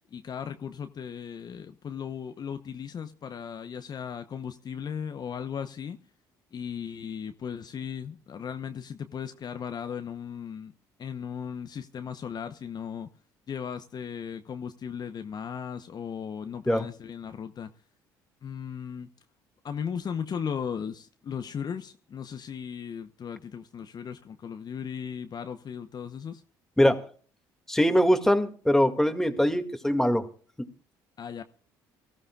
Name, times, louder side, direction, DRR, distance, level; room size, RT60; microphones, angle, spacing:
voice 1, 0.1-6.0 6.5-10.7 11.0-13.1 13.5-17.7 18.4-19.1 19.6-26.4 31.2-31.4, left 7 dB, 45° left, 0.9 m, -36 dB
voice 2, 27.7-30.3 30.6-30.7, equal, 5° left, 2.1 m, -22 dB
24.0 x 14.5 x 2.4 m
hypercardioid pair, 60°, 10 cm